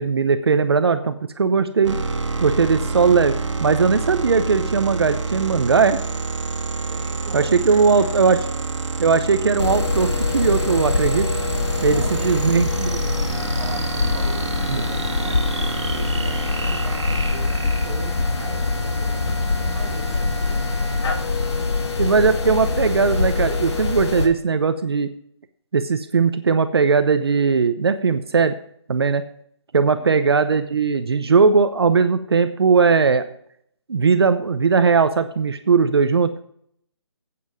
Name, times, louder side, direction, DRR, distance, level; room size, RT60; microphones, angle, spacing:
voice 1, 0.0-2.0 2.4-3.3 3.6-6.0 7.3-8.4 9.0-11.3 11.8-13.1 14.7-14.8 22.0-25.1 25.7-28.6 28.9-29.2 29.7-33.2 33.9-36.3, right 5 dB, 60° right, 10 dB, 0.7 m, -19 dB
sound 1, 1.8-18.3, right 4 dB, 80° right, 1.7 m, -28 dB
voice 2, 6.9-8.5 11.8-12.4 13.1-20.7 29.9-30.3, right 4 dB, 10° right, -2 dB, 1.3 m, -40 dB
sound 2, 9.6-24.3, left 3 dB, 65° left, 1.8 m, -24 dB
8.6 x 8.6 x 5.6 m, 0.66 s
hypercardioid pair, 175°, 15 cm